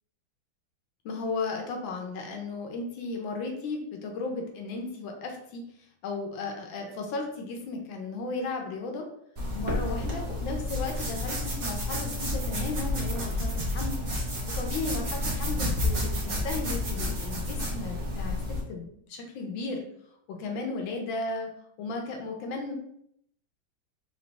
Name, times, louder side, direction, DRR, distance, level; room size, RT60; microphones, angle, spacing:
voice 1, 1.0-5.6 6.0-9.1 9.5-14.0 14.5-19.8 20.3-21.5 21.8-22.7, left 3 dB, 75° left, 2 dB, 1.5 m, -35 dB
sound 1, 9.4-18.6, left 1 dB, 40° right, 0.8 m, -30 dB
4.0 x 2.9 x 3.3 m, 0.71 s
omnidirectional pair, 2.2 m